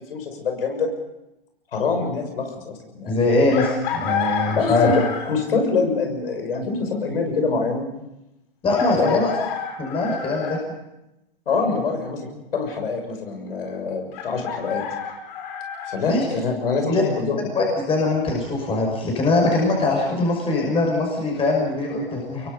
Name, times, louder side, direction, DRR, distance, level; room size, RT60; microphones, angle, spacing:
voice 1, 0.1-0.9 1.7-3.2 4.5-7.8 8.9-9.2 11.5-14.8 15.9-17.4, left 4 dB, 70° left, 4 dB, 6.4 m, -25 dB
voice 2, 3.1-4.9 8.6-9.3 9.8-10.6 16.1-16.2 16.9-17.0 17.5-22.5, left 2 dB, 20° left, -1 dB, 5.8 m, -21 dB
Chicken rooster, 3.5-5.5 7.1-7.2 8.7-10.6 14.1-16.0, left 7 dB, 50° left, 4.4 m, -30 dB
25.5 x 22.5 x 5.3 m, 0.90 s
hypercardioid pair, 115°, 30 cm